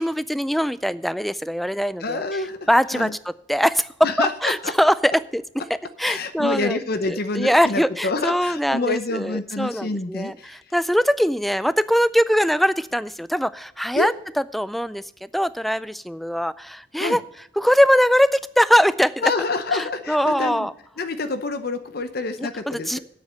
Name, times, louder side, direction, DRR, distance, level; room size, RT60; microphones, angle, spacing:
voice 1, 0.0-2.4 2.7-5.4 5.7-6.8 7.1-14.1 14.5-17.2 17.6-19.3 19.7-20.7 22.4-23.0, equal, ahead, 17 dB, 0.3 m, -22 dB
voice 2, 2.0-2.7 2.9-3.1 4.0-4.7 6.0-10.6 13.9-14.1 17.0-17.2 19.2-20.7 21.0-23.0, left 3 dB, 55° left, 10 dB, 0.8 m, -27 dB
9.3 x 8.2 x 6.6 m, 0.71 s
head